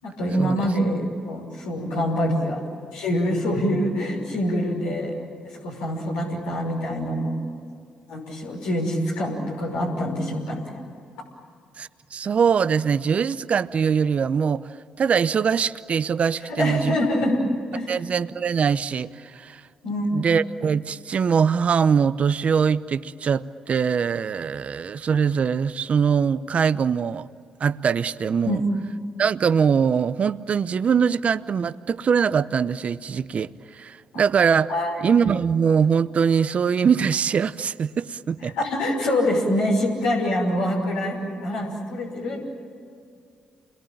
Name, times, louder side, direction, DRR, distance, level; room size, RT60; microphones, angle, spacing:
voice 1, 0.0-5.1 5.4-7.3 8.1-10.8 16.5-17.4 17.7-17.9 19.8-20.1 28.4-28.6 34.7-35.0 38.4-42.5, left 1 dB, 90° left, 6.0 m, -25 dB
voice 2, 11.8-14.7 15.0-16.9 17.9-19.6 20.1-27.3 27.6-28.6 29.2-34.7 35.0-38.6, right 6 dB, 55° right, 0.8 m, -22 dB
29.0 x 22.0 x 9.0 m
hypercardioid pair, 50°, 3 cm